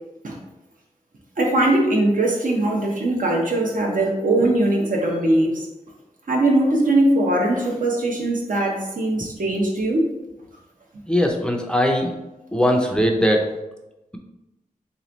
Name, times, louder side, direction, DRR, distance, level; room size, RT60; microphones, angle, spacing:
voice 1, 1.4-5.7 6.3-10.1, right 1 dB, 70° right, -1 dB, 0.9 m, -20 dB
voice 2, 11.1-12.1 12.5-13.4, equal, 5° left, 2 dB, 0.5 m, -20 dB
3.4 x 3.1 x 3.9 m, 0.99 s
wide cardioid pair, 110°, 14 cm